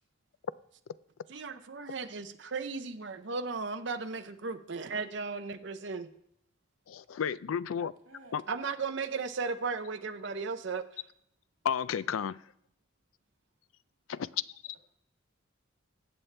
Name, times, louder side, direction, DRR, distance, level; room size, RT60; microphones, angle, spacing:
voice 1, 1.3-6.1 8.5-10.8, right 4 dB, 60° right, 8 dB, 0.7 m, -36 dB
voice 2, 6.9-7.9 8.3-8.4 11.6-12.4 14.1-14.4, left 8 dB, 85° left, 17 dB, 0.4 m, -32 dB
voice 3, 8.1-8.8, right 1 dB, 85° right, 0 dB, 2.2 m, -53 dB
17.5 x 7.3 x 3.3 m, 0.74 s
head